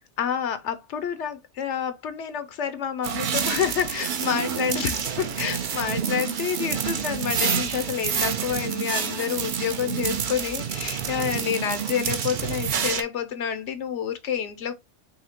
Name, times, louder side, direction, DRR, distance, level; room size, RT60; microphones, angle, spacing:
voice 1, 0.2-14.7, left 8 dB, 75° left, 0.9 m, -28 dB
sound 1, 3.0-13.0, right 7 dB, 50° right, 0.7 m, -28 dB
5.6 x 3.1 x 2.8 m
omnidirectional pair, 1.2 m